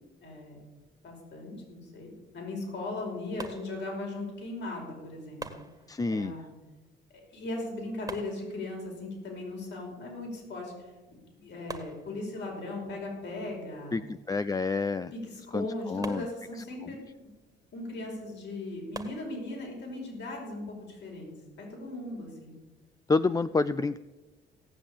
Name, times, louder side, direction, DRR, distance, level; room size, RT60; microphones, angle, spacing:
voice 1, 0.2-0.6 1.0-5.4 6.1-6.5 7.3-14.0 15.1-17.3 17.7-21.3 21.6-22.5, left 2 dB, 65° left, 0 dB, 5.4 m, -38 dB
sound 1, 3.4-4.4 5.4-6.4 8.1-9.1 10.7-10.8 11.1-11.2 11.7-12.7 16.0-17.0 18.9-19.8, right 2 dB, 20° right, 1.7 m, -45 dB
voice 2, 5.9-6.3 13.9-14.0 14.3-15.1 15.5-15.7 15.9-16.2 23.1-24.0, left 3 dB, 20° left, 14 dB, 0.4 m, -27 dB
17.0 x 7.3 x 8.5 m, 1.2 s
cardioid pair, 90°, 20 cm